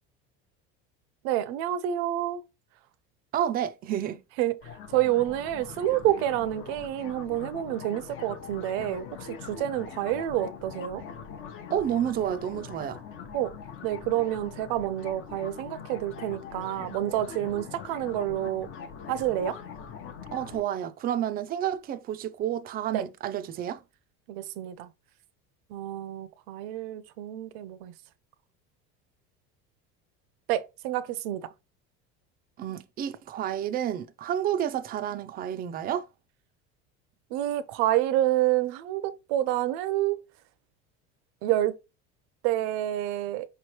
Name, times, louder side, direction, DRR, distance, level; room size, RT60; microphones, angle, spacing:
voice 1, 1.2-2.4 4.4-4.5 4.9-9.1 9.5-11.0 13.3-13.5 13.8-18.7 19.1-19.6 22.9-23.0 24.3-24.9 25.7-27.9 30.5-31.4 37.3-40.2 41.4-41.7 42.4-43.5, right 13 dB, 80° right, 0.7 m, -28 dB
voice 2, 3.3-4.2 11.7-13.0 20.3-23.8 32.6-36.1, right 10 dB, 30° right, 0.4 m, -30 dB
sound 1, 4.6-20.6, left 6 dB, 40° left, 0.8 m, -42 dB
4.9 x 3.1 x 2.9 m
cardioid pair, 140°, 31 cm